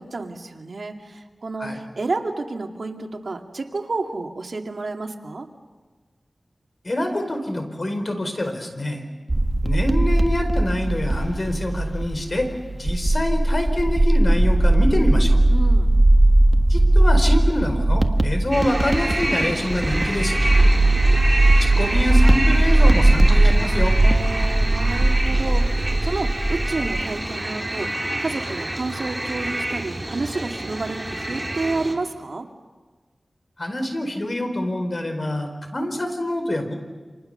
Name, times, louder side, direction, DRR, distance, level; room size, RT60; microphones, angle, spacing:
voice 1, 0.0-5.5 15.5-15.9 20.5-21.1 24.0-27.9 28.2-32.5, right 3 dB, 70° right, 3 dB, 2.2 m, -30 dB
voice 2, 6.8-9.1 9.6-12.5 12.7-15.4 16.7-20.4 21.6-23.9 33.6-36.7, left 1 dB, 45° left, 5 dB, 4.5 m, -25 dB
sound 1, 9.3-27.0, right 1 dB, 40° right, 1.5 m, -18 dB
sound 2, 18.5-31.9, right 1 dB, 20° right, 3.6 m, -28 dB
29.0 x 27.0 x 6.8 m, 1.3 s
wide cardioid pair, 75°, 0 cm